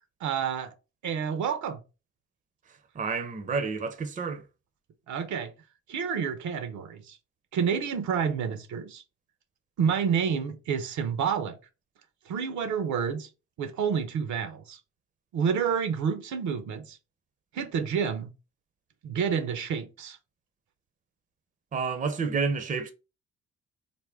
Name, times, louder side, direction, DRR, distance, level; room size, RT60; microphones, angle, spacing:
voice 1, 0.2-0.7 1.0-1.8 5.1-5.5 5.9-7.2 7.5-9.0 9.8-11.6 12.3-13.3 13.6-14.8 15.3-17.0 17.5-18.3 19.0-20.2, right 7 dB, 70° right, 0.7 m, -29 dB
voice 2, 2.9-4.4 21.7-22.9, right 5 dB, 25° right, 0.5 m, -29 dB
3.5 x 2.2 x 3.3 m
cardioid pair, 90°, 30 cm